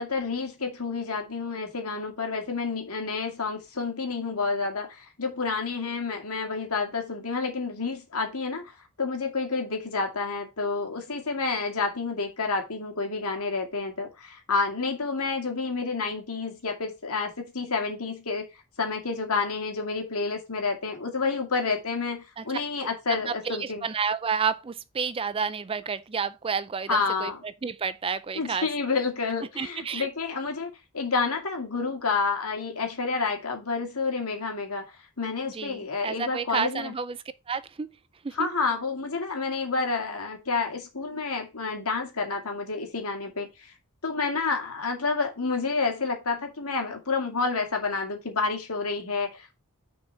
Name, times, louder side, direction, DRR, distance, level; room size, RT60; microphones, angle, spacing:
voice 1, 0.0-8.7 9.0-18.4 18.8-23.8 26.9-27.4 28.4-36.9 38.3-43.7 44.0-49.6, left 4 dB, 75° left, 2.3 m, -29 dB
voice 2, 23.1-28.7 29.6-30.1 35.5-37.9 38.2-38.5, right 6 dB, 25° right, 0.4 m, -30 dB
6.4 x 4.5 x 5.6 m
head